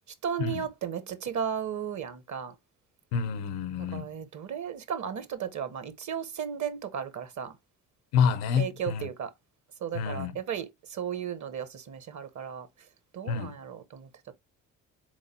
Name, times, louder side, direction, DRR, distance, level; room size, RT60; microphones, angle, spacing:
voice 1, 0.1-2.6 3.8-7.6 8.6-9.3 9.8-12.7 13.1-14.1, right 8 dB, 45° right, 0.8 m, -35 dB
voice 2, 3.1-4.1 8.1-9.1 9.9-10.3 13.3-13.5, left 7 dB, 70° left, 0.6 m, -28 dB
3.9 x 3.1 x 2.6 m
hypercardioid pair, 50°, 39 cm